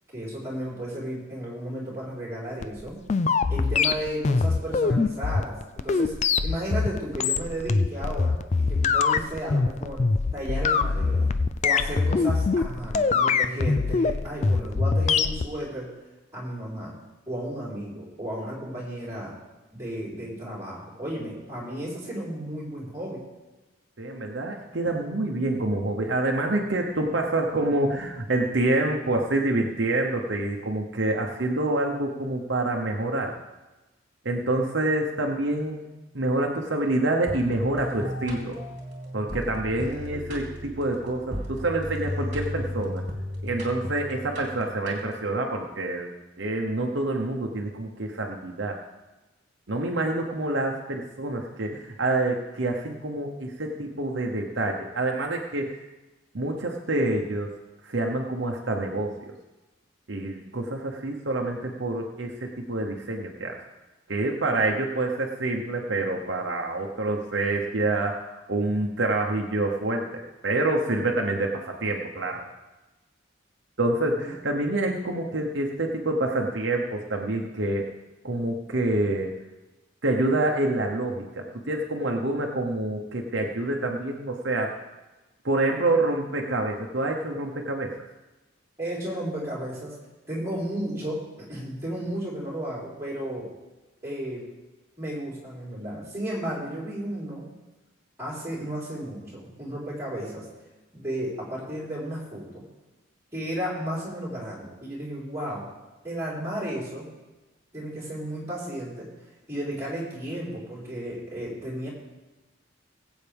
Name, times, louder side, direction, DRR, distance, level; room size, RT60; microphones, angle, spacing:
voice 1, 0.1-3.0 3.5-6.1 6.4-8.4 8.7-10.0 10.3-11.3 11.6-15.9 16.3-17.0 17.3-19.4 19.7-23.2 74.2-74.3 88.8-89.9 90.3-93.5 94.0-94.5 95.0-97.5 98.2-100.4 100.9-102.6 103.3-105.7 106.0-107.1 107.7-109.1 109.5-111.9, right 1 dB, 15° right, -7 dB, 4.2 m, -33 dB
sound 1, 2.6-15.5, left 4 dB, 35° left, 0.4 m, -23 dB
voice 2, 24.0-33.3 34.2-35.9 36.1-38.6 39.1-43.0 43.4-46.1 46.4-48.8 49.7-55.8 56.3-57.5 57.8-59.3 60.1-63.6 64.1-72.4 73.8-77.9 78.2-79.3 80.0-84.7 85.4-87.9, right 2 dB, 60° right, 1 dB, 1.0 m, -27 dB
sound 2, 37.3-45.4, left 1 dB, 40° right, 2.7 m, -35 dB
20.0 x 8.2 x 3.5 m, 1.1 s
head